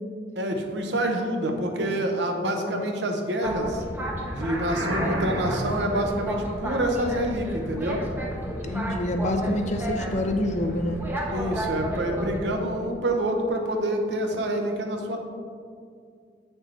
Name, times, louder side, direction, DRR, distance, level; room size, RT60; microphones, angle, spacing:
voice 1, 0.4-3.8 4.3-8.0 11.3-15.2, right 1 dB, 70° right, 3 dB, 0.8 m, -27 dB
voice 2, 2.3-2.9 8.5-11.0, left 1 dB, 40° left, 6 dB, 0.5 m, -28 dB
Boat Water vehicle, 3.4-12.4, equal, 10° right, 0.8 m, -32 dB
sound 1, 4.3-5.9, right 1 dB, 85° right, 1.4 m, -30 dB
7.9 x 6.3 x 3.3 m, 2.3 s
head